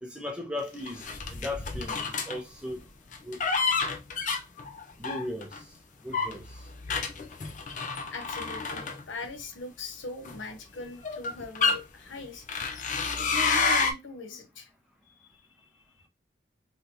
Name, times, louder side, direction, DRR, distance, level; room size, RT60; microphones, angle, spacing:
voice 1, 0.0-2.8 3.2-3.4 5.0-5.7 6.0-6.7, left 1 dB, 5° right, 0.7 m, -37 dB
sound 1, 0.9-2.4 3.1-5.6 6.1-9.4 10.3-10.4 11.0-11.8 12.5-13.9, left 4 dB, 40° left, 0.5 m, -29 dB
voice 2, 8.1-12.5 13.2-14.7 15.0-15.5, left 3 dB, 85° left, 0.8 m, -40 dB
3.4 x 2.7 x 2.7 m
head